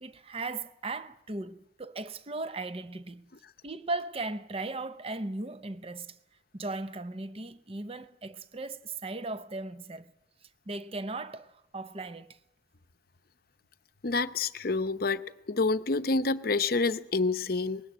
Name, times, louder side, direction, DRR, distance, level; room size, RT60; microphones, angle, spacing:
voice 1, 0.0-3.3 3.6-6.1 6.5-10.1 10.7-12.4, right 2 dB, 30° right, 0.7 m, -37 dB
voice 2, 14.0-15.2 15.5-17.8, left 3 dB, 50° left, 0.7 m, -28 dB
20.0 x 17.0 x 9.0 m
head